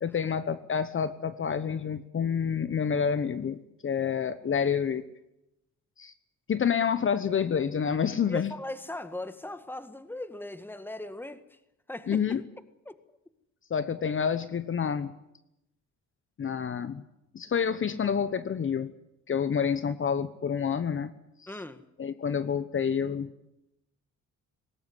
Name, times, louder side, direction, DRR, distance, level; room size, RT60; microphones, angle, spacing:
voice 1, 0.0-5.0 6.0-6.1 6.5-8.5 12.1-12.4 13.7-15.1 16.4-17.0 17.3-18.9 19.3-21.1 21.4-21.5 22.0-23.3, left 7 dB, 45° left, 13 dB, 1.1 m, -28 dB
voice 2, 8.3-11.6 11.9-12.4 12.8-13.2 21.5-21.8, left 1 dB, 5° left, 11 dB, 1.7 m, -39 dB
19.5 x 17.5 x 9.6 m, 0.86 s
cardioid pair, 90°, 30 cm